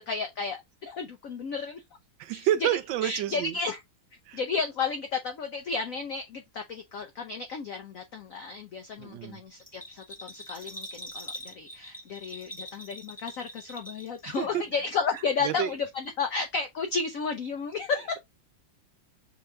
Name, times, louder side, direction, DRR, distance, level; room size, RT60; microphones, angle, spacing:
voice 1, 0.0-1.8 2.3-2.7 3.0-3.8 4.3-18.2, left 5 dB, 85° left, 0.7 m, -33 dB
voice 2, 2.2-3.5 4.3-4.4 9.0-9.4 14.3-14.6 15.4-15.7, right 11 dB, 75° right, 1.2 m, -29 dB
Bell, 9.6-14.7 15.0-15.8 16.0-16.1, equal, 5° left, 1.3 m, -43 dB
5.0 x 2.9 x 3.2 m
omnidirectional pair, 2.2 m